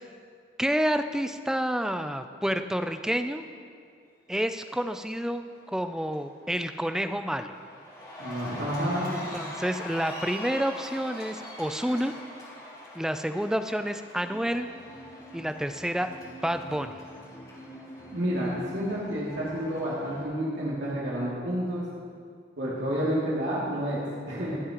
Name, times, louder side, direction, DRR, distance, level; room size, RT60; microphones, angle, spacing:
voice 1, 0.6-3.4 4.3-5.4 5.7-7.5 9.3-12.1 12.9-14.7 15.3-16.1 16.4-17.0, equal, 5° right, 8 dB, 0.4 m, -29 dB
Cheering, 5.4-5.8 6.1-20.2, left 1 dB, 25° left, 3.1 m, -43 dB
voice 2, 8.2-9.1 18.1-21.8 22.6-24.6, equal, 80° right, -7 dB, 2.5 m, -30 dB
25.0 x 8.6 x 3.0 m, 2.2 s
head